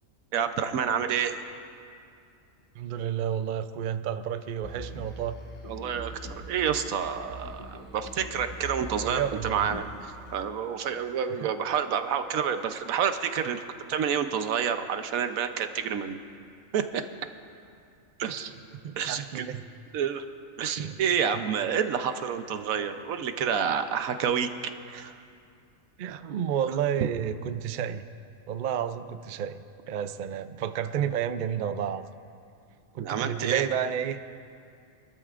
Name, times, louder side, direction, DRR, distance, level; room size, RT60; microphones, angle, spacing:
voice 1, 0.3-1.4 5.7-6.1 6.5-13.6 13.9-16.2 16.7-17.0 18.2-18.5 19.0-19.4 19.9-20.2 20.6-24.5 24.9-25.1 33.0-33.6, right 7 dB, 90° right, 8 dB, 1.2 m, -28 dB
voice 2, 2.7-5.4 9.0-9.7 11.3-11.5 18.2-18.3 18.8-19.6 20.8-21.0 26.0-28.0 28.5-29.6 29.9-32.1 32.9-34.3, right 9 dB, 65° right, 11 dB, 0.4 m, -31 dB
sound 1, 4.6-11.6 12.1-12.2, right 1 dB, 70° left, 2.2 m, -43 dB
25.5 x 13.0 x 2.5 m, 2.4 s
omnidirectional pair, 1.4 m